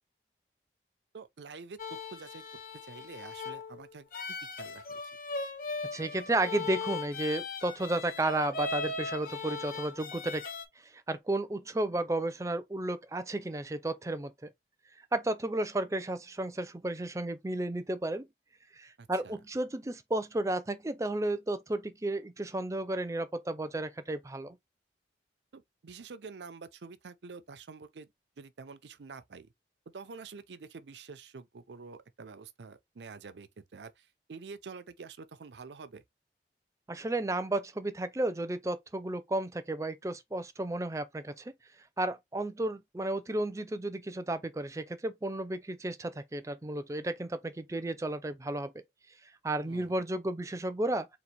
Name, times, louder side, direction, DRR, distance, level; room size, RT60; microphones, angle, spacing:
voice 1, 1.1-2.4 2.8-4.1 4.4-5.0 19.0-19.4 25.5-28.1 28.4-29.5 29.9-36.0 49.6-50.0, right 4 dB, 80° right, 0.5 m, -47 dB
sound 1, 1.8-10.7, left 3 dB, 50° left, 0.7 m, -38 dB
voice 2, 5.9-10.4 10.8-14.3 15.1-18.3 18.7-24.6 36.9-41.5 42.0-48.7 49.4-51.1, right 2 dB, 15° right, 0.4 m, -33 dB
4.0 x 2.4 x 4.4 m
head